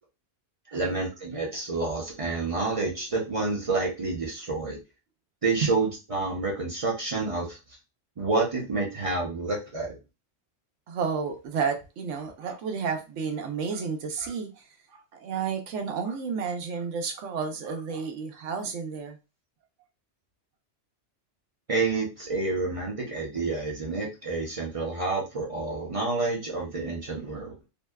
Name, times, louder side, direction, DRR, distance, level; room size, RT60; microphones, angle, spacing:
voice 1, 0.7-4.8 5.4-7.6 8.2-10.0 21.7-27.5, right 3 dB, 35° right, 0.6 m, -29 dB
voice 2, 10.9-14.6 14.9-19.2, right 6 dB, 85° right, 0.9 m, -31 dB
2.6 x 2.1 x 2.2 m
omnidirectional pair, 1.2 m